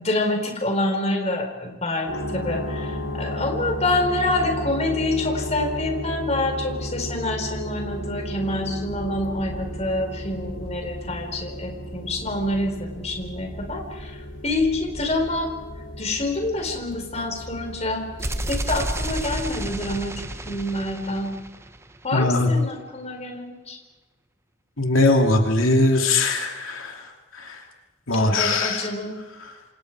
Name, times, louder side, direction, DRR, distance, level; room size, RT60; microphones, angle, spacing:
voice 1, 0.0-14.2 14.4-15.5 16.0-18.1 18.5-20.1 20.5-21.3 22.0-23.8 28.1-29.2, left 2 dB, 35° left, 3 dB, 4.5 m, -27 dB
sound 1, 2.1-20.4, equal, 70° left, 7.3 m, -34 dB
sound 2, 18.2-22.1, right 1 dB, 15° right, 0.9 m, -30 dB
voice 2, 22.1-22.5 24.8-27.0 27.4-27.6 28.1-28.9, left 2 dB, 90° left, 2 dB, 2.7 m, -20 dB
27.5 x 27.5 x 4.8 m, 1.2 s
head